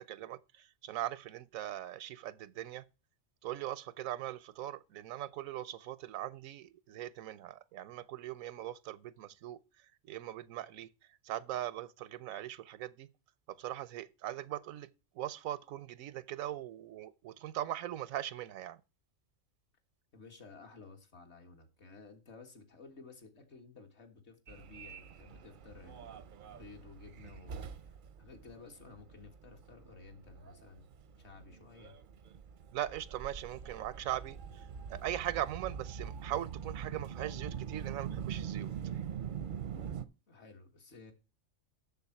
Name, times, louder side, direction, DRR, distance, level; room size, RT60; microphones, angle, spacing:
voice 1, 0.0-2.9 3.4-9.6 10.1-10.9 11.2-13.1 13.6-14.9 15.2-18.8 32.7-34.6 34.9-38.7, right 13 dB, 90° right, 1.1 m, -40 dB
voice 2, 20.1-26.1 26.5-30.9 31.2-32.0 40.3-41.1, left 4 dB, 55° left, 1.9 m, -54 dB
Subway metro underground, 24.5-40.1, right 8 dB, 55° right, 0.6 m, -44 dB
7.2 x 6.8 x 5.8 m
omnidirectional pair, 1.4 m